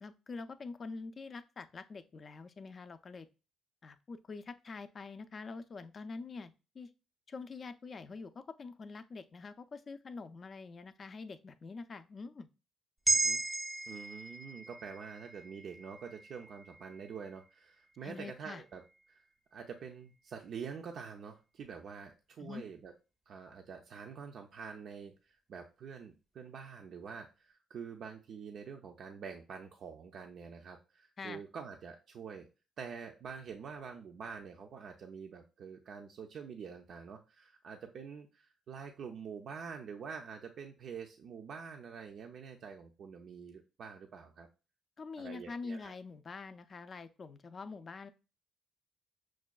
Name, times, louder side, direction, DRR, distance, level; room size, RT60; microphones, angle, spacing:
voice 1, 0.0-3.3 3.8-6.9 7.3-12.5 18.0-18.6 22.4-22.6 31.2-31.4 45.0-48.1, left 4 dB, 40° left, 10 dB, 0.4 m, -45 dB
sound 1, 13.1-17.5 17.9-18.1, right 3 dB, 10° right, 0.5 m, -36 dB
voice 2, 13.1-13.4 13.9-18.8 19.1-19.2 19.5-22.9 23.3-32.5 32.8-44.5 45.2-45.9, right 6 dB, 65° right, 3 dB, 0.4 m, -46 dB
5.9 x 2.2 x 2.3 m, 0.31 s
cardioid pair, 90°, 0 cm